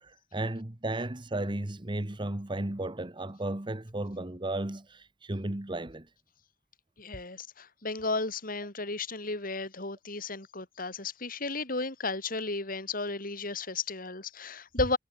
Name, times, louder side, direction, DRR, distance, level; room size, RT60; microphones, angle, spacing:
voice 1, 0.0-6.1, right 1 dB, 25° right, 1.2 m, -34 dB
voice 2, 7.0-15.0, left 3 dB, 50° left, 5.6 m, -34 dB
head